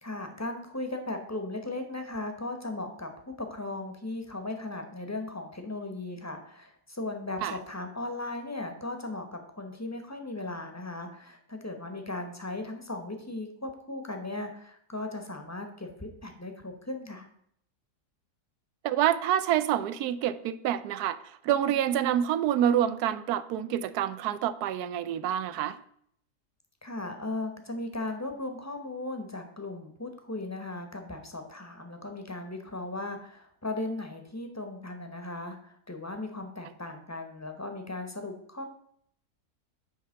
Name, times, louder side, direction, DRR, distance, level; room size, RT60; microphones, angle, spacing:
voice 1, 0.0-17.3 26.8-38.6, left 2 dB, 15° left, 5 dB, 0.8 m, -37 dB
voice 2, 18.8-25.8, right 10 dB, 75° right, 14 dB, 1.1 m, -27 dB
9.6 x 3.3 x 6.3 m, 0.67 s
omnidirectional pair, 1.7 m